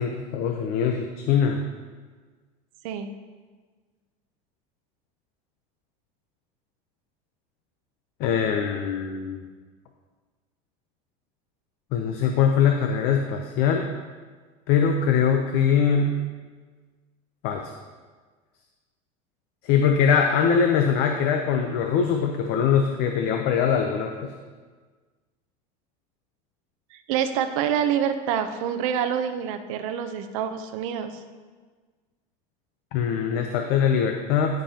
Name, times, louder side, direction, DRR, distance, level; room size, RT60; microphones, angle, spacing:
voice 1, 0.0-1.6 8.2-9.5 11.9-13.9 14.7-16.2 17.4-17.7 19.6-24.3 32.9-34.6, left 7 dB, 65° left, 4 dB, 0.7 m, -22 dB
voice 2, 26.9-31.1, right 8 dB, 85° right, 8 dB, 0.7 m, -26 dB
14.5 x 5.3 x 2.9 m, 1.4 s
cardioid pair, 140°, 17 cm